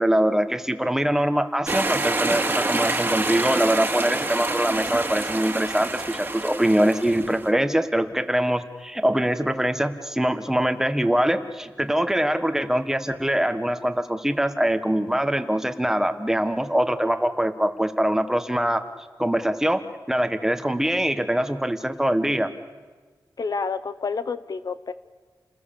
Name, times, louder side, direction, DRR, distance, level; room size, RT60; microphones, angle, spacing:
voice 1, 0.0-18.8 19.2-19.8 20.1-22.5, right 1 dB, 5° right, 8 dB, 1.4 m, -23 dB
sound 1, 1.7-7.5, right 2 dB, 25° right, 2.3 m, -27 dB
voice 2, 23.4-24.9, left 4 dB, 60° left, 12 dB, 0.9 m, -29 dB
30.0 x 20.5 x 7.0 m, 1.4 s
wide cardioid pair, 110°, 7 cm